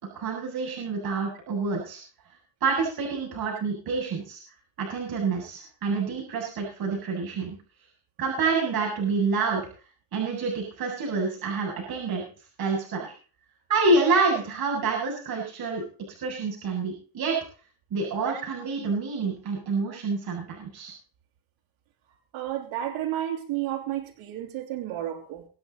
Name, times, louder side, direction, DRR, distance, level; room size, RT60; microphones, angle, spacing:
voice 1, 0.1-2.0 2.6-4.4 4.8-7.6 8.2-9.7 10.1-12.2 12.6-13.1 13.7-15.8 16.2-17.4 17.9-20.9, right 4 dB, 50° right, -2 dB, 7.6 m, -27 dB
voice 2, 22.3-25.5, right 12 dB, 85° right, 1 dB, 2.9 m, -32 dB
25.0 x 8.9 x 4.1 m, 0.38 s
cardioid pair, 155°, 48 cm